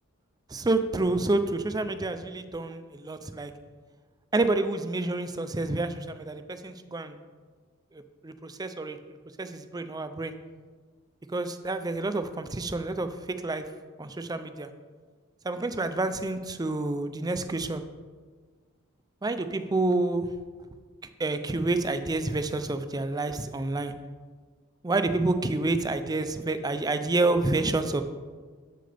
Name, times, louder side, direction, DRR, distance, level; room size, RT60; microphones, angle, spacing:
voice 1, 0.5-3.5 4.3-7.2 7.9-9.0 9.4-10.3 11.3-13.7 14.0-14.7 15.4-17.8 19.2-20.3 21.2-24.0 24.8-28.0, right 2 dB, 20° right, 10 dB, 0.5 m, -28 dB
12.0 x 7.6 x 3.4 m, 1.5 s
head